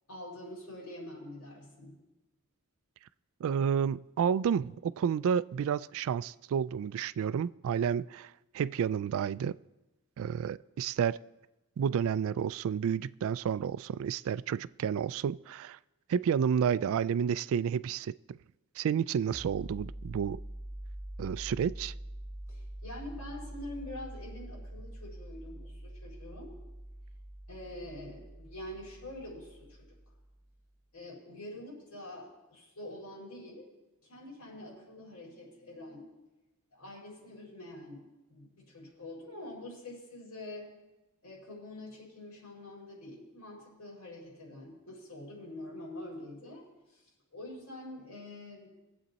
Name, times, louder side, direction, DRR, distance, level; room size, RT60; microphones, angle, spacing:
voice 1, 0.1-1.9 22.5-26.5 27.5-30.0 30.9-33.7 34.0-36.1 36.7-40.7 41.2-46.6 46.9-47.0 47.3-48.7, left 1 dB, 85° left, -2 dB, 4.6 m, -45 dB
voice 2, 3.4-9.6 10.2-11.2 11.8-15.8 16.1-18.4 18.8-20.4 21.2-21.9, right 7 dB, 65° right, 19 dB, 0.3 m, -30 dB
sound 1, 19.3-30.6, right 1 dB, 25° right, 2.7 m, -45 dB
20.5 x 7.8 x 4.1 m, 1.1 s
head